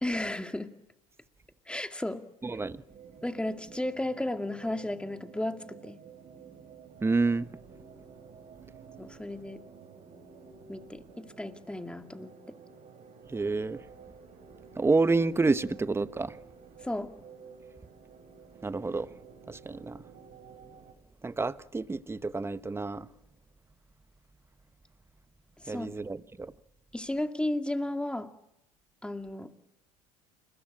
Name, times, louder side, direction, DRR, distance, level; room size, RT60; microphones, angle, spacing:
voice 1, 0.0-0.7 1.7-2.2 3.2-6.0 9.0-9.6 10.7-12.6 16.8-17.1 25.6-25.9 26.9-28.3 29.0-29.5, left 1 dB, 5° left, 2.3 m, -34 dB
voice 2, 2.4-2.8 7.0-7.5 13.3-13.8 14.8-16.4 18.6-19.1 19.5-20.0 21.2-23.1 25.7-26.5, right 3 dB, 15° right, 1.1 m, -29 dB
sound 1, 2.9-20.9, right 5 dB, 45° right, 7.3 m, -51 dB
29.0 x 21.5 x 8.8 m
hypercardioid pair, 75°, 19 cm